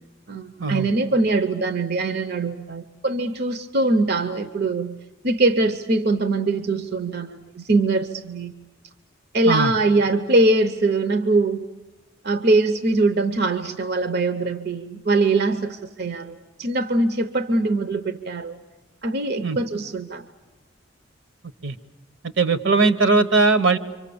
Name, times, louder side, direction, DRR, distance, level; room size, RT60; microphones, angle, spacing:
voice 1, 0.3-5.0 5.2-8.5 9.3-11.7 12.2-18.6 19.0-20.3, right 2 dB, 55° right, 0.8 m, -22 dB
voice 2, 22.4-23.8, right 3 dB, 75° right, 1.1 m, -19 dB
28.0 x 25.0 x 7.0 m
head